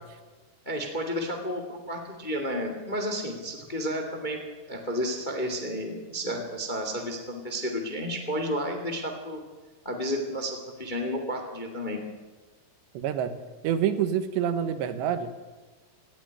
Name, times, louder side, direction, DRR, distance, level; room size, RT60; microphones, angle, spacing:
voice 1, 0.6-4.4 4.7-9.4 9.8-12.0, equal, 20° left, 4 dB, 1.2 m, -31 dB
voice 2, 13.0-15.3, right 9 dB, 85° right, 10 dB, 3.5 m, -27 dB
18.0 x 15.5 x 9.8 m, 1.3 s
omnidirectional pair, 4.9 m